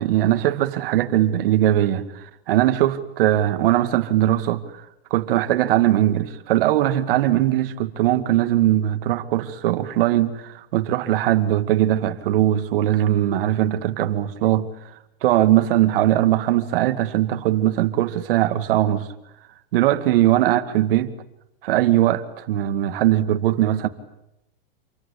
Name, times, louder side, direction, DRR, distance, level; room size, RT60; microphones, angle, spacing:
voice 1, 0.0-2.1 2.5-4.6 5.1-14.7 15.2-19.1 19.7-21.1 21.6-23.9, right 13 dB, 65° right, 2.4 m, -20 dB
27.5 x 23.5 x 8.6 m
supercardioid pair, 155°, 30 cm